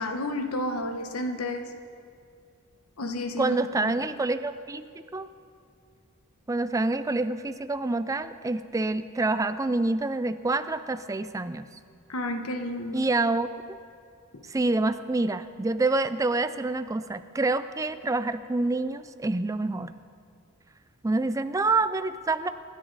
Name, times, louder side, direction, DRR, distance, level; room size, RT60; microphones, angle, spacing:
voice 1, 0.0-1.7 3.0-3.6 3.8-3.9 12.1-13.1 14.3-14.4, left 1 dB, 75° left, 6 dB, 1.2 m, -31 dB
voice 2, 3.4-4.8 5.1-5.3 6.5-11.7 12.9-13.5 14.5-19.9 21.0-22.5, right 2 dB, 15° right, 12 dB, 0.4 m, -27 dB
27.0 x 10.0 x 4.0 m, 2.4 s
head